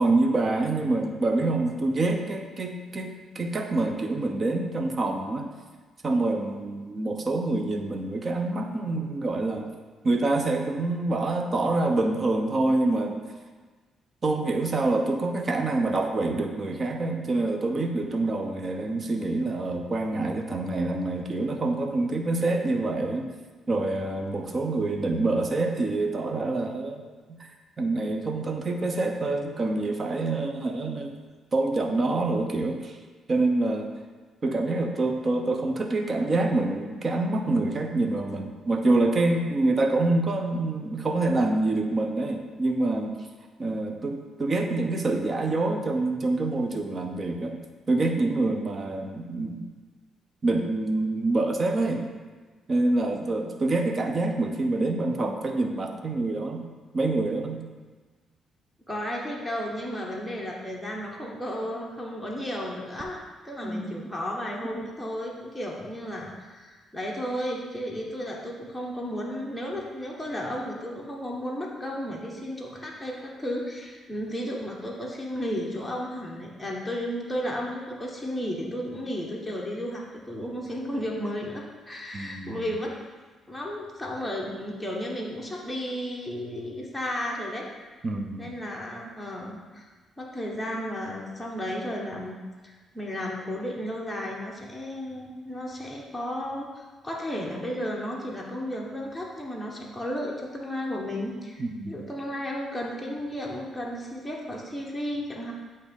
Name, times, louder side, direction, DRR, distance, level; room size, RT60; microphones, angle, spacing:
voice 1, 0.0-5.5 6.0-9.7 10.0-13.2 14.2-23.3 23.7-27.5 27.8-31.1 31.5-33.0 33.3-33.9 34.4-43.1 43.6-47.6 47.9-49.7 50.4-52.1 52.7-56.6 56.9-57.6 63.6-63.9 82.1-82.6 88.0-88.5 101.6-102.0, right 2 dB, 40° right, 4 dB, 0.8 m, -26 dB
voice 2, 58.9-63.2 63.4-82.9 83.5-87.6 88.4-89.9 90.2-105.5, equal, 5° left, -3 dB, 1.1 m, -33 dB
8.2 x 2.8 x 5.2 m, 1.4 s
cardioid pair, 90°, 0 cm